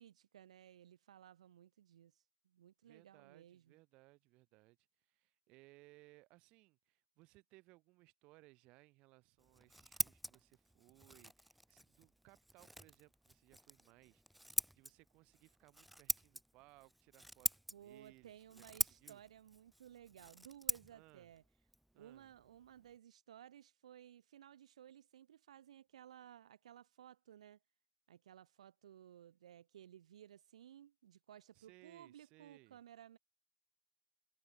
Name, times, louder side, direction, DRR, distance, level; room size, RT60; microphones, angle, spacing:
voice 1, 0.0-3.8 17.7-21.4 22.0-27.6 28.1-33.2, right 10 dB, 70° right, 2.0 m, -58 dB
voice 2, 2.8-19.2 20.9-21.3 21.9-22.3 31.5-32.8, right 22 dB, 25° right, 4.0 m, -65 dB
Scissors, 9.4-23.0, right 1 dB, ahead, 0.3 m, -45 dB
supercardioid pair, 180°, 4 cm